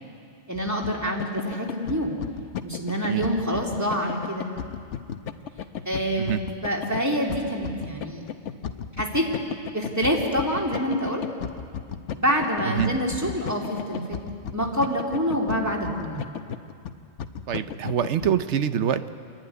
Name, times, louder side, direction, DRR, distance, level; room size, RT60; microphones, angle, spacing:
sound 1, 0.5-18.3, left 8 dB, 80° left, 1.1 m, -35 dB
voice 1, 0.5-2.1 2.6-4.5 5.8-8.3 9.0-11.3 12.1-14.2 14.5-16.2, equal, 15° right, -1 dB, 2.6 m, -26 dB
voice 2, 17.5-19.1, right 8 dB, 75° right, 11 dB, 1.0 m, -25 dB
27.5 x 11.5 x 9.8 m, 2.4 s
omnidirectional pair, 1.2 m